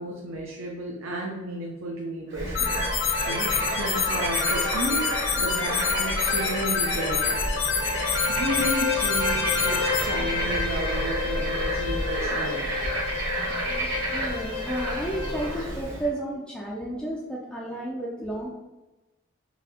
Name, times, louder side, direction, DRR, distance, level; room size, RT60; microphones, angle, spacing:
voice 1, 0.0-7.4 8.3-12.7, right 1 dB, 85° right, -2 dB, 0.6 m, -33 dB
Bird / Frog, 2.3-16.1, right 1 dB, 55° right, 1.1 m, -30 dB
sound 1, 2.5-10.0, left 5 dB, 65° left, 0.5 m, -27 dB
Bowed string instrument, 7.3-15.6, left 5 dB, 20° right, 0.7 m, -32 dB
voice 2, 13.7-18.5, right 1 dB, 5° left, -5 dB, 0.3 m, -32 dB
4.0 x 2.7 x 2.8 m, 1.1 s
head